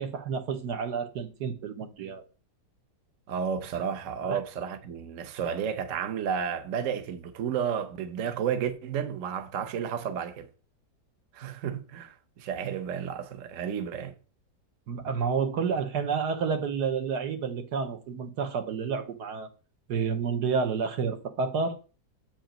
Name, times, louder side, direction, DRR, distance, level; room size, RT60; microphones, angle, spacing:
voice 1, 0.0-2.2 4.2-4.4 14.9-19.5 19.9-21.8, right 5 dB, 75° right, 1.5 m, -30 dB
voice 2, 3.3-10.5 11.3-14.2, right 7 dB, 55° right, 1.1 m, -32 dB
7.6 x 5.1 x 5.0 m
omnidirectional pair, 1.8 m